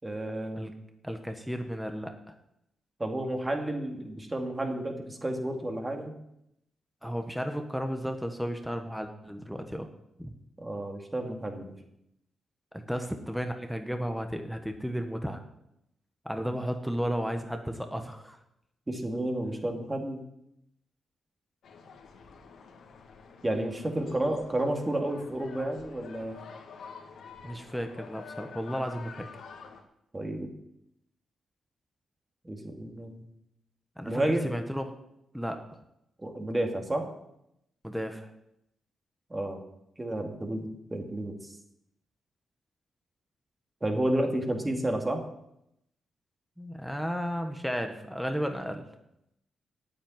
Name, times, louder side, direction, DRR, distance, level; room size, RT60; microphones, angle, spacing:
voice 1, 0.0-0.7 3.0-6.1 10.6-11.8 18.9-20.2 23.4-26.4 30.1-30.5 32.4-33.3 34.0-34.5 36.2-37.2 39.3-39.6 40.0-41.5 43.8-45.3, right 1 dB, 20° right, 3 dB, 2.5 m, -31 dB
voice 2, 1.0-2.1 7.0-9.9 10.2-10.3 12.7-15.4 16.2-18.4 27.4-29.3 34.0-34.9 35.3-35.8 37.8-38.3 46.6-48.8, equal, ahead, 5 dB, 1.4 m, -33 dB
sound 1, 21.6-29.8, left 5 dB, 75° left, 2.0 m, -48 dB
9.1 x 8.5 x 9.2 m, 0.81 s
cardioid pair, 70°, 0 cm